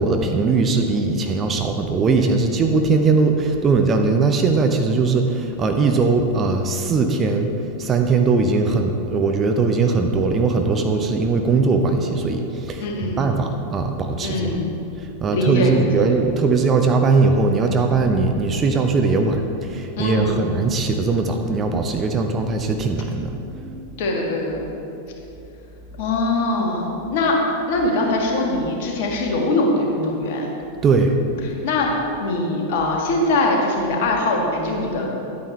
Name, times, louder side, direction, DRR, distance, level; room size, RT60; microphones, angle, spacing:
voice 1, 0.0-7.5 7.8-14.5 15.0-23.9 30.8-31.1, right 4 dB, 25° right, 4 dB, 0.7 m, -20 dB
voice 2, 12.8-13.3 14.2-14.8 15.3-16.1 20.0-20.5 24.0-24.7 26.0-27.4 27.7-30.5 31.4-31.9 32.2-35.1, left 2 dB, 50° left, 0 dB, 1.6 m, -22 dB
10.5 x 8.9 x 3.2 m, 2.8 s
figure-of-eight pair, 90°, 0 cm